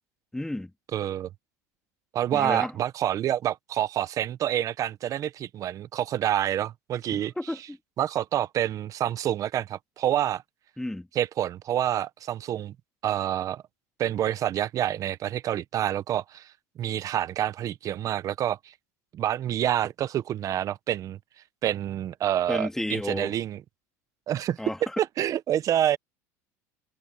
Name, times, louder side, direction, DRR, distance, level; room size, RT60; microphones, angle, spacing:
voice 1, 0.3-0.7 2.3-2.7 7.1-7.8 10.8-11.1 22.5-23.3 24.6-25.0, left 1 dB, 5° left, 2.4 m, -32 dB
voice 2, 0.9-1.3 2.1-7.3 8.0-10.4 11.1-12.7 13.0-13.6 14.0-16.5 16.8-18.7 19.1-21.2 21.6-23.6 24.3-24.6 25.2-26.0, right 11 dB, 40° right, 1.1 m, -27 dB
supercardioid pair, 110°, 9 cm